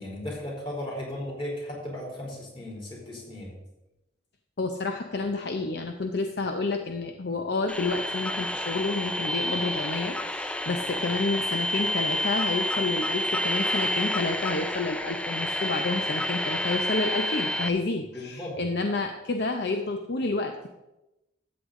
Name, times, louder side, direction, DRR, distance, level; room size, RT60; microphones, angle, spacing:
voice 1, 0.0-3.5 18.1-18.6, left 1 dB, 30° left, -3 dB, 3.5 m, -36 dB
voice 2, 4.6-20.7, left 3 dB, 60° left, 5 dB, 0.7 m, -29 dB
sound 1, 7.7-17.7, left 1 dB, 5° left, 0.5 m, -29 dB
13.0 x 8.0 x 3.8 m, 0.96 s
head